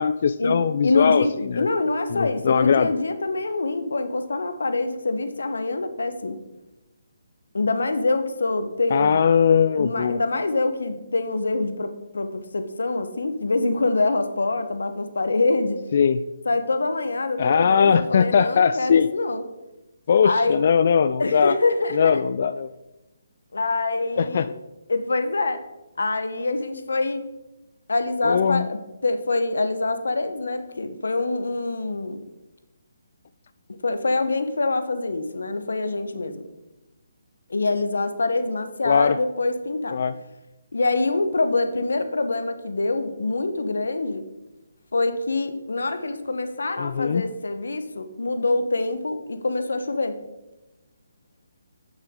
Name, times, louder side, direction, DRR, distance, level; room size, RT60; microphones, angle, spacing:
voice 1, 0.0-1.7 2.1-2.9 8.9-10.2 15.9-16.3 17.4-19.1 20.1-21.6 21.9-22.7 24.2-24.5 28.2-28.7 38.8-39.2 39.9-40.2 46.8-47.3, left 6 dB, 50° left, 13 dB, 0.3 m, -20 dB
voice 2, 0.8-1.3 1.6-6.4 7.5-9.2 9.8-15.8 16.4-19.4 20.2-20.6 21.2-22.2 23.5-24.5 24.9-25.6 26.0-27.2 27.9-32.2 33.8-36.5 37.5-40.0 40.7-44.2 44.9-50.2, left 3 dB, 80° left, 9 dB, 1.0 m, -25 dB
11.0 x 6.3 x 3.7 m, 1.0 s
hypercardioid pair, 155°, 0 cm